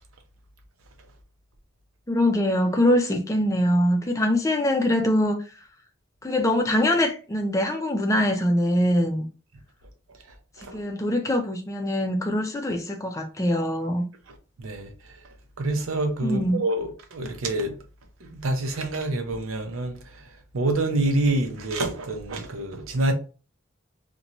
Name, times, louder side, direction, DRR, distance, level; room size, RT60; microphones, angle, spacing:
voice 1, 2.1-5.4 6.2-9.3 10.6-14.1 16.2-16.6, left 1 dB, 15° left, 0.4 m, -23 dB
voice 2, 14.6-14.9 15.6-17.8 18.2-20.0 20.5-23.1, right 2 dB, 85° right, 0.6 m, -26 dB
2.6 x 2.2 x 2.9 m
head